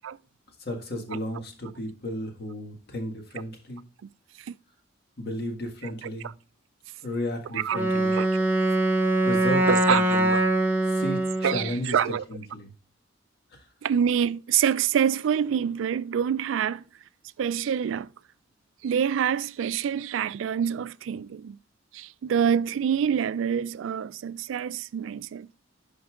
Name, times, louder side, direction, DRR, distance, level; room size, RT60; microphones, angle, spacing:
voice 1, 0.6-3.8 5.2-6.3 7.0-8.2 9.2-10.3 10.9-12.7, left 1 dB, 55° left, 1.6 m, -34 dB
Wind instrument woodwind instrument, 7.7-11.7, right 1 dB, 10° right, 1.0 m, -23 dB
voice 2, 8.1-8.4 9.7-10.0 10.3-10.4 11.4-12.2 13.8-16.8 17.4-18.1 18.8-21.6 21.9-25.5, right 8 dB, 85° right, 0.3 m, -26 dB
11.0 x 5.3 x 2.4 m
head